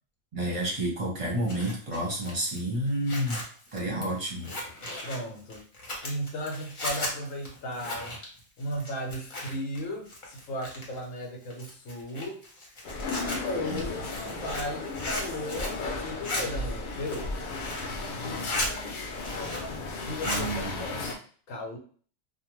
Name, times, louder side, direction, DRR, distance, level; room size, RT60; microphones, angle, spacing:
voice 1, 0.3-3.4 3.7-4.5 13.7-14.0 20.3-20.8, right 1 dB, 30° right, -2 dB, 0.7 m, -30 dB
Zipper (clothing), 1.2-9.8 10.1-11.0 11.5-16.4 16.9-17.9 18.2-18.7 19.1-19.8 20.0-20.5, left 1 dB, 45° left, 0.9 m, -36 dB
voice 2, 5.0-5.6 6.0-8.2 8.6-12.4 13.4-17.3 19.8-21.2 21.5-21.8, left 1 dB, 85° left, 1 dB, 1.1 m, -36 dB
sound 1, 12.8-21.2, left 3 dB, 60° left, 0.5 m, -35 dB
2.5 x 2.2 x 3.0 m, 0.43 s
omnidirectional pair, 1.4 m